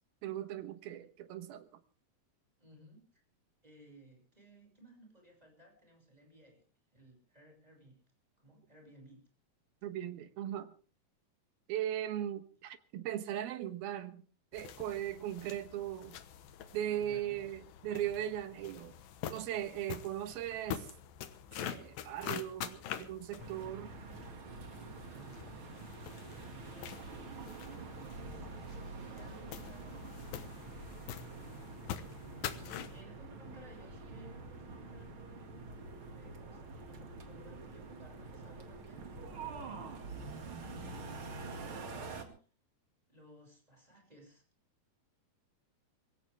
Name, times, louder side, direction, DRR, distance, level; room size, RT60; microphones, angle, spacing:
voice 1, 0.2-1.7 9.8-10.7 11.7-14.2 14.5-16.2 16.7-18.9 19.3-20.9 21.5-23.9, right 11 dB, 85° right, 3.1 m, -38 dB
voice 2, 2.6-3.2 3.6-6.6 6.9-8.0 8.4-9.2 17.0-17.4 25.0-25.7 26.3-30.6 32.4-39.2 40.6-42.3 43.1-44.4, right 1 dB, 10° right, 6.1 m, -59 dB
sound 1, 14.5-33.0, left 10 dB, 75° left, 2.9 m, -46 dB
sound 2, 23.4-42.2, right 3 dB, 40° right, 2.5 m, -46 dB
24.0 x 16.0 x 3.5 m
omnidirectional pair, 4.2 m